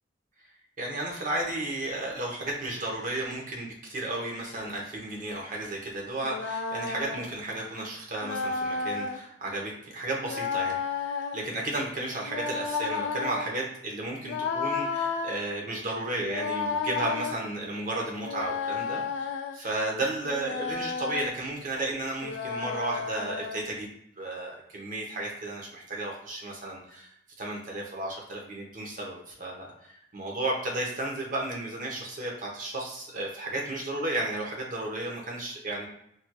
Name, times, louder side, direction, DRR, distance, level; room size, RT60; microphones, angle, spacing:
voice 1, 0.8-27.1 27.4-35.9, right 2 dB, 45° right, -1 dB, 0.8 m, -33 dB
sound 1, 6.2-7.3 8.2-9.2 10.2-11.5 12.2-13.5 14.2-15.3 16.2-17.4 18.2-19.6 20.2-21.3 22.2-23.6, left 5 dB, 80° left, 0.3 m, -32 dB
3.2 x 2.9 x 2.2 m, 0.74 s
head